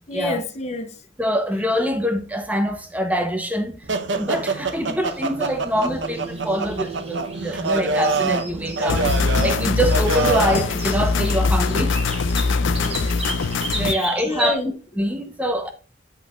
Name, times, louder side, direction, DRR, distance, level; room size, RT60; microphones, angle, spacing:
voice 1, 0.1-1.0 12.8-13.3 13.9-14.7, left 2 dB, 35° left, 0.7 m, -29 dB
voice 2, 1.2-3.8 4.2-12.0 13.7-14.6 15.0-15.7, equal, 10° right, 0.8 m, -24 dB
sound 1, 3.9-10.7, right 3 dB, 70° right, 0.8 m, -26 dB
sound 2, 5.0-14.5, right 2 dB, 30° right, 1.5 m, -35 dB
sound 3, 8.9-13.9, left 4 dB, 80° left, 0.5 m, -22 dB
8.2 x 5.7 x 2.4 m
head